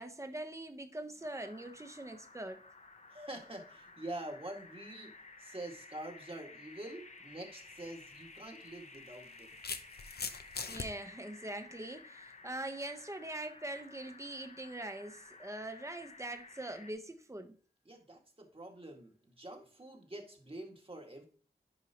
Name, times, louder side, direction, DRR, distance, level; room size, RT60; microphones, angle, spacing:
voice 1, 0.0-2.6 10.7-17.5, right 1 dB, 20° right, 1.0 m, -43 dB
sound 1, 1.2-16.9, left 3 dB, 45° left, 0.9 m, -54 dB
voice 2, 3.1-5.1 5.4-9.5 17.9-21.3, right 1 dB, 35° right, 2.1 m, -46 dB
sound 2, 7.7-7.9 8.9-10.9, left 5 dB, 75° left, 0.7 m, -40 dB
10.5 x 4.8 x 3.0 m
wide cardioid pair, 70°, 17 cm